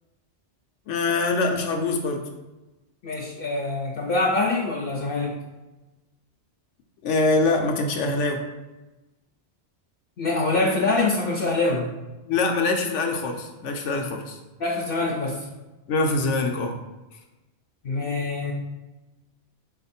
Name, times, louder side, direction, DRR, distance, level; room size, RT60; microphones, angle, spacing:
voice 1, 0.9-2.3 7.0-8.4 12.2-14.4 15.9-16.8, left 3 dB, 85° left, 3 dB, 0.9 m, -24 dB
voice 2, 3.0-5.3 10.2-11.9 14.6-15.5 17.8-18.5, left 2 dB, 60° left, -1 dB, 0.7 m, -24 dB
4.1 x 2.5 x 4.1 m, 1.1 s
omnidirectional pair, 1.2 m